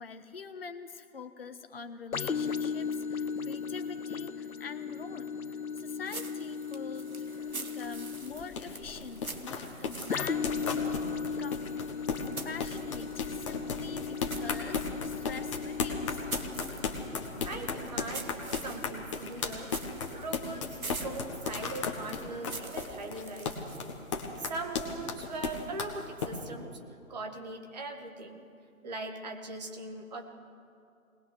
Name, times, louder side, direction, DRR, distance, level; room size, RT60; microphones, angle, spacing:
voice 1, 0.0-5.3 5.7-7.1 7.5-11.0 11.4-11.7 12.4-16.2, left 5 dB, 40° left, 8 dB, 1.4 m, -44 dB
sound 1, 2.1-19.7 20.2-20.3, left 6 dB, 80° left, 1.0 m, -37 dB
sound 2, 6.0-13.4 13.8-24.0, right 3 dB, 80° right, 2.0 m, -46 dB
run road, 7.3-26.3, left 5 dB, 20° left, 1.5 m, -36 dB
voice 2, 17.4-19.7 20.1-23.6 24.4-26.7 27.1-28.5 28.8-30.3, right 2 dB, 30° right, 4 dB, 1.9 m, -40 dB
21.5 x 20.0 x 6.4 m, 2.5 s
figure-of-eight pair, 155°, 42 cm